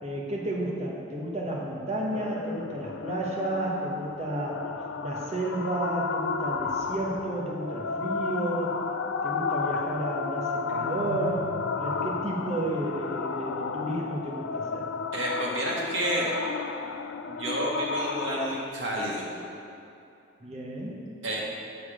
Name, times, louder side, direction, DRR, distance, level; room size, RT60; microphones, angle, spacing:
voice 1, 0.0-4.6 5.0-8.7 9.2-11.5 11.8-14.9 20.4-21.0, right 1 dB, 35° right, -3 dB, 1.1 m, -32 dB
sound 1, 2.1-18.7, left 5 dB, 85° left, 0.4 m, -33 dB
voice 2, 15.1-16.3 17.3-19.2 21.2-21.4, right 1 dB, 85° right, -4 dB, 1.7 m, -30 dB
6.9 x 6.6 x 5.0 m, 2.7 s
head